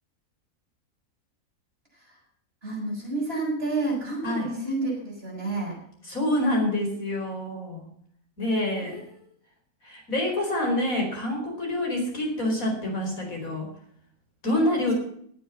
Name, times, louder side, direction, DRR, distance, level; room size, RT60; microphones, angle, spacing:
voice 1, 2.6-5.8 8.8-9.3, right 2 dB, 40° right, -3 dB, 7.7 m, -30 dB
voice 2, 6.1-7.8 8.4-9.0 9.8-13.7 14.4-14.9, left 1 dB, 70° left, 0 dB, 5.2 m, -27 dB
18.0 x 7.8 x 7.4 m, 0.65 s
omnidirectional pair, 1.5 m